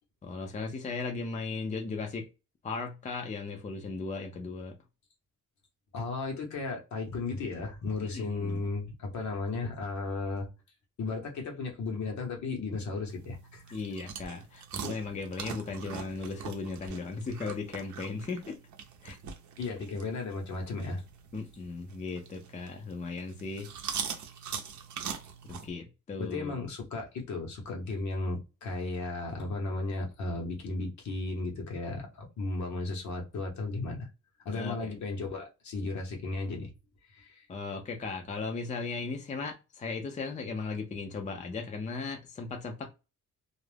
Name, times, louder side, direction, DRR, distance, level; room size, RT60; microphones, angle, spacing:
voice 1, 0.2-2.3 2.6-4.8 8.0-8.6 13.7-18.6 19.0-19.2 21.3-23.7 25.4-26.5 34.5-34.9 37.5-42.9, left 4 dB, 25° left, 0.4 m, -37 dB
voice 2, 5.9-10.5 11.0-13.8 19.6-21.0 26.2-34.1 34.4-36.7 37.1-37.4, left 3 dB, 65° left, 0.9 m, -35 dB
sound 1, 13.1-25.7, right 7 dB, 65° right, 0.6 m, -42 dB
2.4 x 2.1 x 3.2 m
cardioid pair, 135°, 31 cm